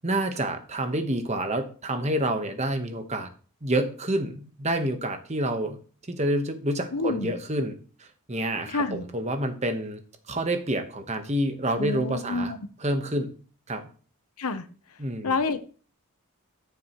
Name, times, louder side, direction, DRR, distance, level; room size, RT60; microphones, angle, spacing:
voice 1, 0.0-3.3 3.6-5.8 6.1-10.0 10.3-12.5 12.8-13.3 13.7-13.8 15.0-15.3, right 1 dB, 30° right, 1.1 m, -28 dB
voice 2, 6.9-7.3 8.7-9.0 11.8-12.6 14.4-14.6 15.2-15.6, left 3 dB, 85° left, 0.9 m, -28 dB
13.5 x 7.1 x 3.1 m
head